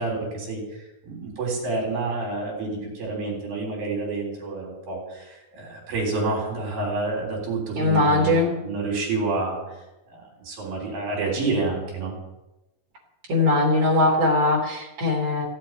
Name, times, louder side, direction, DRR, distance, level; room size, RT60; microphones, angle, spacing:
voice 1, 0.0-9.6 10.1-12.1, right 3 dB, 70° right, -2 dB, 5.3 m, -29 dB
voice 2, 7.8-8.5 13.3-15.5, left 2 dB, 45° right, 0 dB, 4.4 m, -20 dB
16.0 x 8.5 x 9.0 m, 1.0 s
omnidirectional pair, 4.2 m